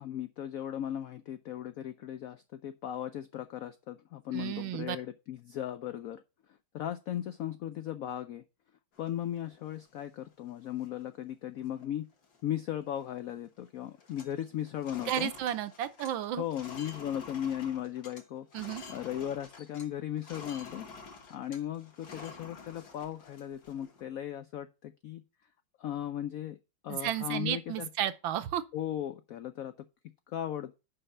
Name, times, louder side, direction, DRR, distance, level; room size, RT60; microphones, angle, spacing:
voice 1, 0.0-6.2 6.7-8.4 9.0-12.1 12.4-15.3 16.4-18.5 18.9-20.9 21.3-25.2 25.8-26.6 26.8-27.9 28.7-29.7 30.3-30.7, left 11 dB, 85° left, 0.7 m, -37 dB
voice 2, 4.3-5.0 15.0-16.4 18.5-18.8 26.9-28.6, right 12 dB, 85° right, 1.5 m, -33 dB
sound 1, 8.9-10.0 10.5-10.6 10.8-11.2 11.6-11.8 12.1-13.2 13.4-13.7 13.9-19.9 20.2-24.0, left 4 dB, 55° left, 2.0 m, -49 dB
5.6 x 5.5 x 6.6 m
omnidirectional pair, 2.1 m